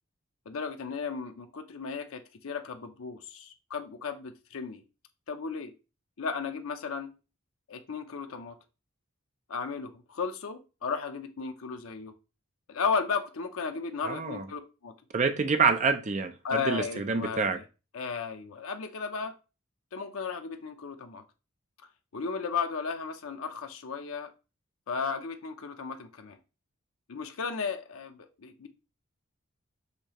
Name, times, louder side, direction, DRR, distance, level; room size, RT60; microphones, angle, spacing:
voice 1, 0.5-4.8 5.3-5.7 6.2-7.1 7.7-8.5 9.5-12.1 12.7-14.9 16.4-17.6 17.9-19.3 19.9-21.2 22.1-24.3 24.9-26.4 27.1-28.7, left 5 dB, 75° left, 0.6 m, -34 dB
voice 2, 14.0-14.4 15.1-17.6, right 5 dB, 35° right, 0.4 m, -27 dB
6.6 x 2.7 x 2.9 m
head